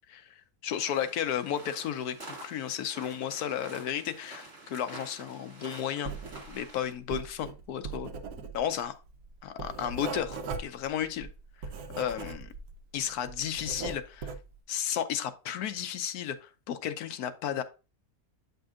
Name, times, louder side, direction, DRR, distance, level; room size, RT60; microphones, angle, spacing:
voice 1, 0.1-6.1 6.5-8.1 8.5-9.0 9.4-11.3 12.0-12.5 12.9-14.3 14.7-17.6, left 9 dB, 80° left, 11 dB, 1.1 m, -33 dB
sound 1, 0.7-6.9, right 2 dB, 45° right, 2.5 m, -48 dB
Writing, 6.0-6.7 7.0-12.8 13.1-14.5, right 4 dB, 75° right, 1.2 m, -39 dB
8.6 x 5.3 x 2.4 m, 0.31 s
omnidirectional pair, 1.6 m